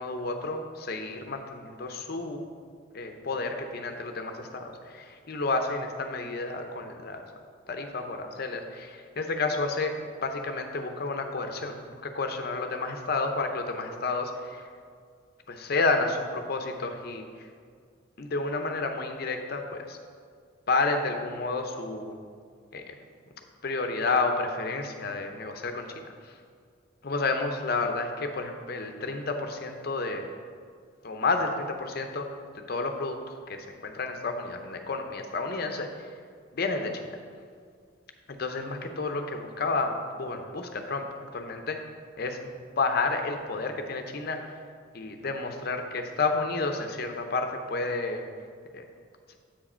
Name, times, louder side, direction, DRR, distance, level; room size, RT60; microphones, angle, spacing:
voice 1, 0.0-2.5 2.9-7.2 7.7-9.9 10.2-14.7 15.5-17.5 18.2-20.0 20.7-22.2 22.7-23.0 23.6-25.9 26.2-26.4 27.0-30.3 31.0-32.3 32.7-36.1 36.5-37.2 38.3-41.8 42.2-44.5 44.9-48.2 48.7-48.8, left 3 dB, 50° left, 5 dB, 0.6 m, -31 dB
7.5 x 4.8 x 4.3 m, 2.1 s
head